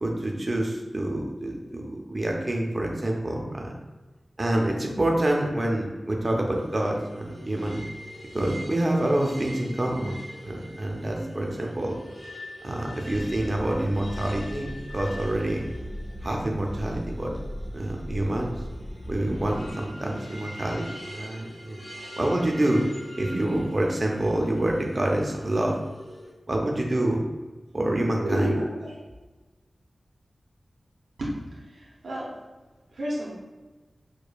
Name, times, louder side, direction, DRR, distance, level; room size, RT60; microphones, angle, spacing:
voice 1, 0.0-3.7 4.4-7.8 8.3-10.2 10.4-12.0 12.6-15.6 16.2-17.3 17.7-18.6 19.1-21.8 22.2-22.8 23.1-25.8 26.5-27.3 27.7-28.5, right 1 dB, 35° right, 0 dB, 0.5 m, -27 dB
sound 1, 6.5-26.3, left 1 dB, 70° left, 1.1 m, -44 dB
sound 2, 13.1-19.7, equal, 5° left, 0.7 m, -38 dB
voice 2, 28.2-28.9 31.2-32.3 32.9-33.3, right 1 dB, 80° right, -6 dB, 0.7 m, -30 dB
4.8 x 2.2 x 2.2 m, 1.2 s
wide cardioid pair, 90°, 0 cm